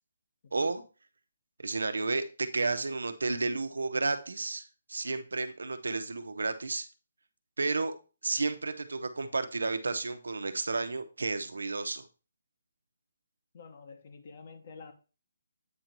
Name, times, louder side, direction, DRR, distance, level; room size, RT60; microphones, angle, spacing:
voice 1, 0.5-0.8 1.6-6.9 7.6-7.9 8.2-12.0, right 3 dB, 90° right, 0.9 m, -32 dB
voice 2, 13.5-14.9, left 4 dB, 40° left, 1.3 m, -48 dB
8.6 x 3.0 x 5.3 m
hypercardioid pair, 165°, 0 cm